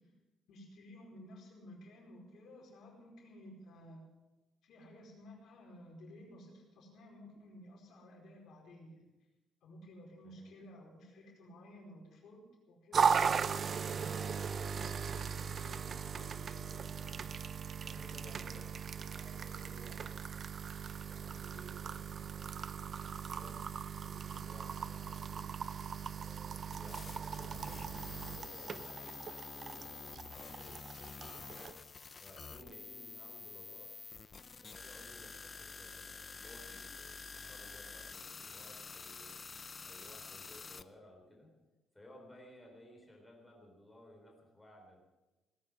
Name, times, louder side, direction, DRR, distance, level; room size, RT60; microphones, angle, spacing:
voice 1, 0.5-4.0 4.6-9.0 9.6-13.2 13.5-14.1 15.7-15.9 16.2-16.3, left 1 dB, 70° left, -1 dB, 4.8 m, -54 dB
voice 2, 10.2-10.5 14.7-17.3 17.8-20.4 21.1-23.7 23.9-25.5 26.1-31.8 32.2-33.9 34.6-39.4 39.8-41.5 41.9-45.0, left 1 dB, 10° left, -1 dB, 4.0 m, -57 dB
sound 1, 12.9-31.7, right 6 dB, 45° right, 0.6 m, -38 dB
sound 2, 26.7-40.8, left 4 dB, 30° left, 0.6 m, -48 dB
18.5 x 9.6 x 7.6 m, 1.1 s
cardioid pair, 125°, 0 cm